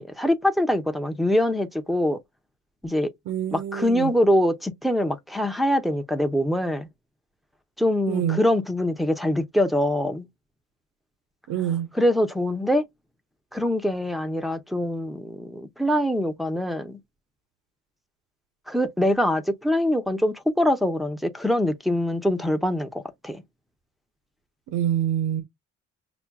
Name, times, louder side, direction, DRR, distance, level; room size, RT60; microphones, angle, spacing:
voice 1, 0.0-2.2 2.8-3.1 3.5-6.9 7.8-10.3 11.9-12.8 13.5-17.0 18.7-22.9 23.2-23.4, left 1 dB, ahead, 0.7 m, -24 dB
voice 2, 3.3-4.1 8.1-8.4 11.5-11.9 24.7-25.4, right 10 dB, 75° right, 1.0 m, -26 dB
6.0 x 2.2 x 2.2 m
cardioid pair, 90°, 30 cm